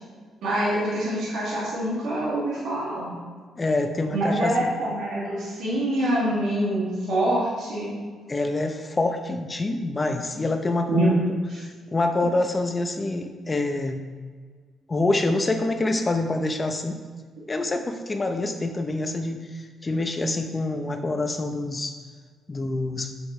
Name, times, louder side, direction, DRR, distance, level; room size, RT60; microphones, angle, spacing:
voice 1, 0.4-3.2 4.1-7.9 10.9-11.2 11.5-11.6, right 1 dB, 75° right, -8 dB, 2.3 m, -25 dB
voice 2, 3.6-4.7 8.3-11.2 11.9-14.0 14.9-17.0 17.5-22.0 22.5-23.1, left 2 dB, 25° left, 6 dB, 0.7 m, -26 dB
7.9 x 7.0 x 3.2 m, 1.5 s
cardioid pair, 90°, 0 cm